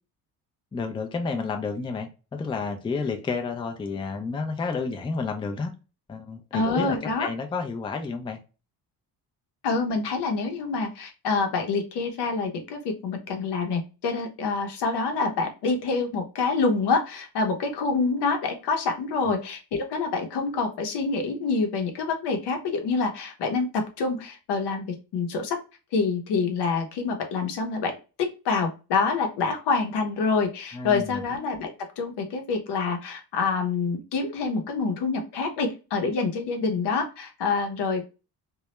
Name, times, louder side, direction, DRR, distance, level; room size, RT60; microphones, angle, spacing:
voice 1, 0.7-5.7 6.1-8.4 19.2-19.3 30.7-31.2, left 4 dB, 15° left, 5 dB, 0.3 m, -30 dB
voice 2, 6.5-7.3 9.6-25.6 25.9-27.9 28.2-38.0, left 4 dB, 80° left, 4 dB, 0.7 m, -26 dB
2.3 x 2.0 x 2.8 m, 0.31 s
cardioid pair, 105°, 40 cm